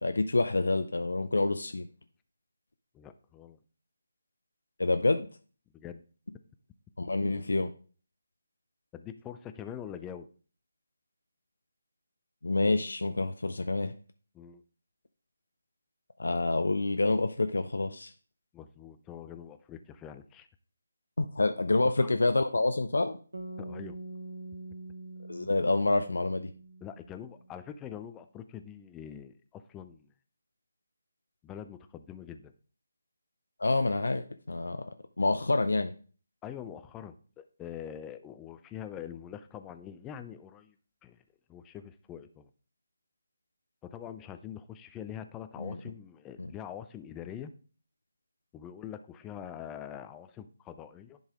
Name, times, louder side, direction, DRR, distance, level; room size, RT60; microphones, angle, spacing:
voice 1, 0.0-1.9 4.8-5.3 7.0-7.7 12.4-13.9 16.2-18.1 21.2-23.2 25.3-26.5 33.6-35.9 45.6-45.8 46.4-46.5, left 2 dB, 70° left, 8 dB, 0.5 m, -27 dB
voice 2, 2.9-3.6 5.7-6.0 8.9-10.3 14.3-14.6 18.5-20.5 22.0-22.1 23.6-24.0 26.8-30.1 31.4-32.5 36.4-40.7 41.0-41.2 41.5-42.5 43.8-47.5 48.5-51.2, left 9 dB, 10° left, 10 dB, 0.4 m, -44 dB
sound 1, 23.3-27.6, right 2 dB, 80° right, 1.2 m, -44 dB
10.5 x 4.0 x 3.7 m, 0.40 s
figure-of-eight pair, 150°, 0 cm